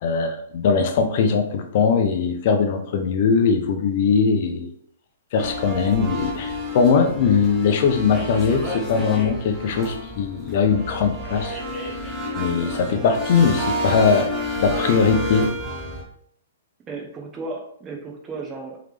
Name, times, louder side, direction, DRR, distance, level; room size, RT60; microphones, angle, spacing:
voice 1, 0.0-4.7 5.3-11.6 12.3-14.3 14.6-15.5, left 5 dB, 50° left, 5 dB, 0.7 m, -20 dB
sound 1, 5.4-16.0, equal, ahead, 1.1 m, -30 dB
voice 2, 16.9-18.8, right 3 dB, 20° right, 1 dB, 0.9 m, -34 dB
3.7 x 3.2 x 3.4 m, 0.64 s
hypercardioid pair, 140°, 0 cm